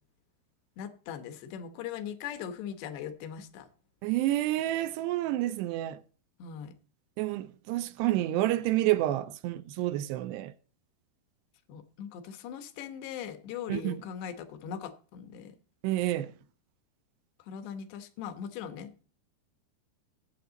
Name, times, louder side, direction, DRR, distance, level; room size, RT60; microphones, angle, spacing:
voice 1, 0.8-3.7 6.4-6.7 11.7-15.6 17.5-18.9, left 8 dB, 85° left, 3.3 m, -40 dB
voice 2, 4.0-6.0 7.2-10.5 13.7-14.0 15.8-16.3, right 15 dB, 85° right, 2.9 m, -29 dB
17.5 x 7.9 x 4.0 m
omnidirectional pair, 4.8 m